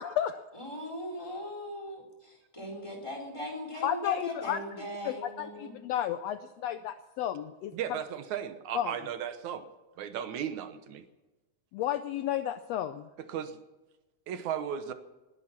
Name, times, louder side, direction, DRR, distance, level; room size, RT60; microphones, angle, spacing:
voice 1, 0.0-0.4 3.8-4.6 5.0-8.0 8.7-8.9 11.7-13.1, left 11 dB, 75° left, 10 dB, 1.6 m, -32 dB
voice 2, 0.5-5.7, left 1 dB, 10° left, 2 dB, 4.1 m, -39 dB
voice 3, 7.7-9.7 10.0-11.0 13.3-13.6 14.3-14.9, right 9 dB, 80° right, 10 dB, 2.4 m, -35 dB
20.5 x 11.0 x 6.0 m, 1.1 s
omnidirectional pair, 3.4 m